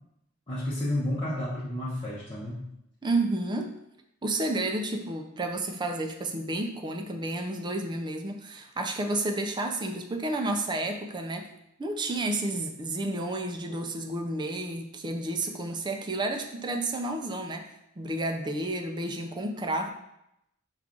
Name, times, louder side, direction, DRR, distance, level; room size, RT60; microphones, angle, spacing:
voice 1, 0.5-2.7, left 1 dB, 25° left, -9 dB, 0.8 m, -31 dB
voice 2, 3.0-3.7 4.2-11.5 11.8-17.7 18.0-19.9, right 2 dB, 20° right, 5 dB, 0.4 m, -31 dB
6.0 x 2.4 x 3.7 m, 0.82 s
head